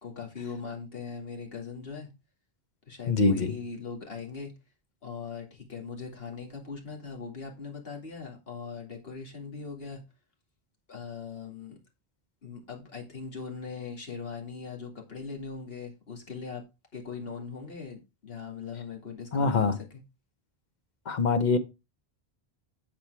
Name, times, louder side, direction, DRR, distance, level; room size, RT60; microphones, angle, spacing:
voice 1, 0.0-2.1 2.9-4.5 5.0-10.0 10.9-11.8 12.4-16.6 16.9-20.0, left 5 dB, 70° left, 2.5 m, -40 dB
voice 2, 3.1-3.5 19.3-19.8 21.1-21.6, left 4 dB, 50° left, 1.1 m, -24 dB
8.9 x 7.0 x 3.4 m
omnidirectional pair, 1.0 m